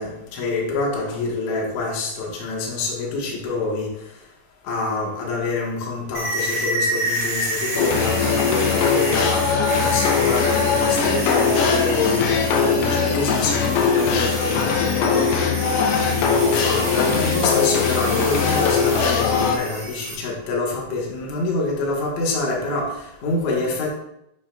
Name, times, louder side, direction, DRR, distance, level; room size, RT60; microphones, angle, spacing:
voice 1, 0.0-3.9 4.6-9.5 9.8-15.3 16.0-23.9, left 3 dB, 70° left, -3 dB, 1.8 m, -26 dB
sound 1, 6.1-20.1, right 1 dB, 25° right, 1.9 m, -29 dB
sound 2, 7.8-19.6, left 6 dB, 90° left, 2.3 m, -20 dB
8.5 x 5.1 x 2.3 m, 0.79 s
omnidirectional pair, 5.2 m